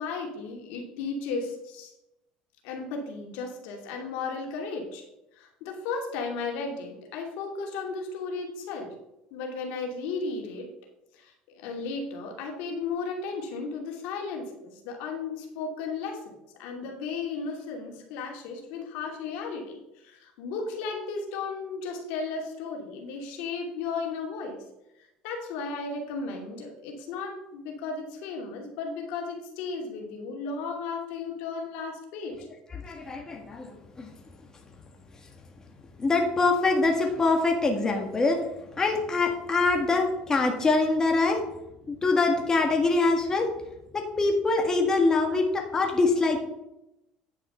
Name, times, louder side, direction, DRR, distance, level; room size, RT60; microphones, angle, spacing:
voice 1, 0.0-1.9 2.6-5.0 5.3-8.9 9.3-10.7 11.1-16.3 16.6-24.6 25.2-32.3, left 4 dB, 80° left, 1 dB, 2.7 m, -35 dB
voice 2, 32.7-34.1 36.0-38.4 38.8-41.4 41.9-43.5 43.9-46.4, left 3 dB, 20° left, 2 dB, 1.7 m, -24 dB
10.0 x 5.9 x 5.7 m, 0.89 s
supercardioid pair, 110°, 3 cm